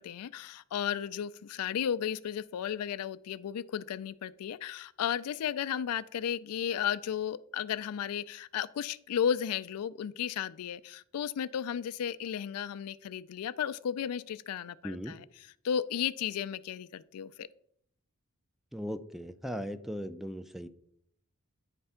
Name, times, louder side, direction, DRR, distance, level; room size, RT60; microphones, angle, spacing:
voice 1, 0.0-15.2 15.6-17.5, left 8 dB, 80° left, 16 dB, 0.4 m, -34 dB
voice 2, 14.8-15.1 18.7-20.7, equal, ahead, 9 dB, 0.3 m, -38 dB
9.6 x 3.3 x 5.6 m, 0.70 s
head